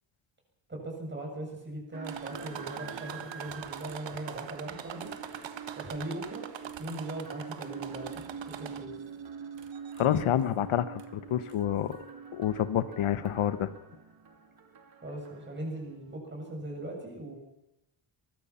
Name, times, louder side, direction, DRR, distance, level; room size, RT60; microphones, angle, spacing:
voice 1, 0.7-5.1 5.8-6.5 6.8-8.1 8.6-8.9 15.0-17.4, right 1 dB, 20° right, 0 dB, 7.2 m, -39 dB
sound 1, 1.9-16.2, right 6 dB, 45° right, 2.6 m, -45 dB
sound 2, 2.0-9.1 9.6-10.2 11.0-11.1 11.5-11.6, right 9 dB, 60° right, 1.6 m, -43 dB
voice 2, 10.0-12.0 12.3-13.7, left 10 dB, 80° left, 13 dB, 1.4 m, -28 dB
23.0 x 21.0 x 5.9 m, 0.89 s
wide cardioid pair, 160°, 49 cm